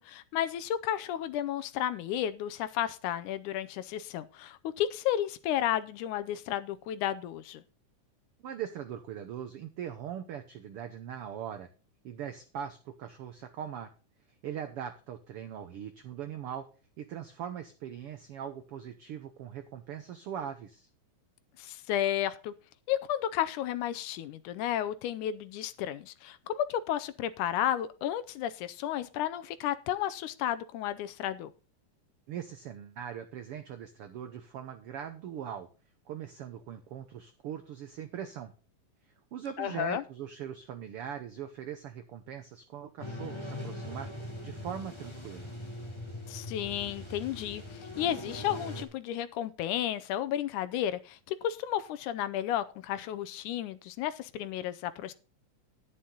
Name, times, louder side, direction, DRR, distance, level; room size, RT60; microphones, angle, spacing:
voice 1, 0.1-7.6 21.6-22.5 22.9-31.5 39.6-40.0 46.3-55.1, left 11 dB, 80° left, 13 dB, 2.0 m, -32 dB
voice 2, 8.4-11.7 12.0-13.9 14.4-16.6 17.0-20.9 32.3-35.7 36.1-38.5 39.3-45.5, right 9 dB, 85° right, 8 dB, 1.2 m, -41 dB
sound 1, 43.0-48.8, left 1 dB, 45° left, 0.3 m, -41 dB
10.0 x 10.0 x 3.8 m, 0.35 s
omnidirectional pair, 3.8 m